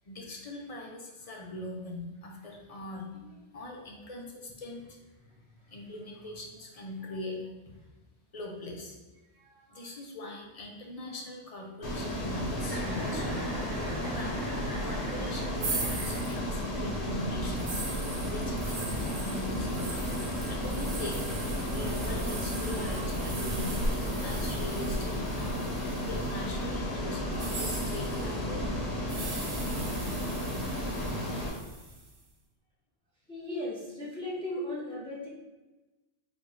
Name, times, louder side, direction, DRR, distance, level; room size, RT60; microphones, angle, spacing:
voice 1, 0.0-5.0 5.7-7.7 8.3-9.0 9.7-13.5 13.8-17.8 18.2-20.0 20.5-23.7 24.1-25.7 26.0-28.6, left 1 dB, 40° left, 0 dB, 0.7 m, -41 dB
voice 2, 5.2-5.9 9.3-9.9 19.7-20.0 20.3-20.8 21.7-22.1 22.7-23.1 24.0-24.6 25.3-25.5 33.3-35.3, left 1 dB, 5° left, -5 dB, 0.7 m, -40 dB
Ocean, 11.8-31.5, equal, 80° left, 1.2 m, -33 dB
Chuckle chortle, 12.6-16.6, right 1 dB, 45° right, 0.9 m, -41 dB
sound 1, 15.6-26.5 27.3-32.1, right 2 dB, 80° right, 1.1 m, -39 dB
4.1 x 3.4 x 3.2 m, 1.1 s
omnidirectional pair, 1.1 m